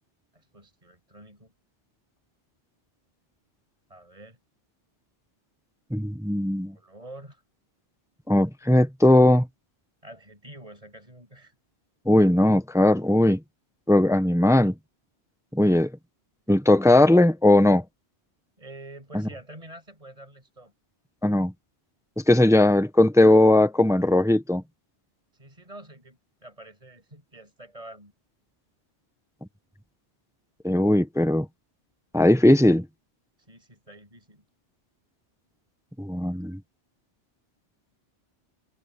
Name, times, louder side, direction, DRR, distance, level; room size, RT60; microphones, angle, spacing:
voice 1, 0.3-1.5 3.9-4.4 6.6-7.4 10.0-11.6 18.6-20.7 25.3-28.1 33.4-34.5, right 1 dB, 30° right, 7.1 m, -47 dB
voice 2, 5.9-6.7 8.3-9.5 12.1-13.4 13.9-14.7 15.5-15.9 16.5-17.8 21.2-21.5 22.3-24.6 30.6-31.5 32.1-32.8 36.0-36.6, left 1 dB, 5° right, 0.7 m, -19 dB
omnidirectional pair, 1.2 m